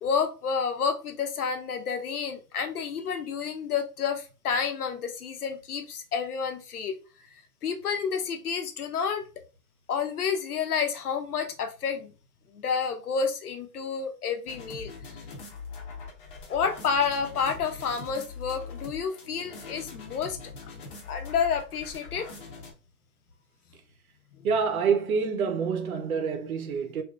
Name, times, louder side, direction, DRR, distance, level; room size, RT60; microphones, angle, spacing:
voice 1, 0.0-7.0 7.6-9.2 9.9-12.1 12.5-14.9 16.5-20.4 21.1-22.3, left 6 dB, 70° left, 0.8 m, -29 dB
sound 1, 14.5-22.7, left 4 dB, 35° left, 0.7 m, -42 dB
voice 2, 24.4-27.0, right 6 dB, 65° right, 0.7 m, -27 dB
2.8 x 2.5 x 2.3 m
hypercardioid pair, 145°, 47 cm